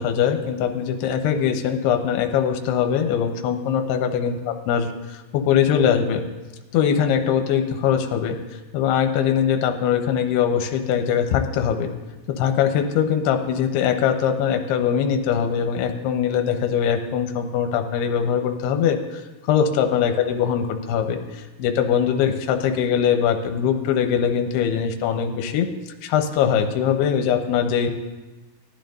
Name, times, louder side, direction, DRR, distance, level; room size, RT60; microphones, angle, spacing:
voice 1, 0.0-4.4 4.7-6.2 6.7-8.4 8.7-11.9 12.3-25.7 26.0-27.9, left 8 dB, 85° left, 5 dB, 2.7 m, -22 dB
18.0 x 11.5 x 2.6 m, 1.2 s
omnidirectional pair, 4.7 m